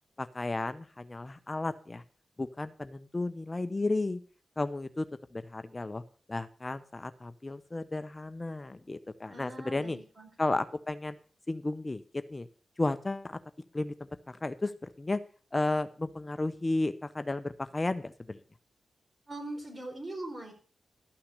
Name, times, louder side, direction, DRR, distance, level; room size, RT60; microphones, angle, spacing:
voice 1, 0.2-2.0 2.4-4.2 4.6-5.1 5.3-6.0 6.3-10.0 10.4-11.2 11.5-12.0 12.3-12.5 12.8-13.4 13.7-13.9 14.3-14.7 15.0-15.2 15.5-18.4, left 2 dB, 30° left, 11 dB, 0.7 m, -33 dB
voice 2, 9.3-10.3 19.3-20.5, right 2 dB, 40° right, 2 dB, 4.8 m, -41 dB
13.0 x 5.8 x 6.6 m, 0.41 s
cardioid pair, 45°, 0 cm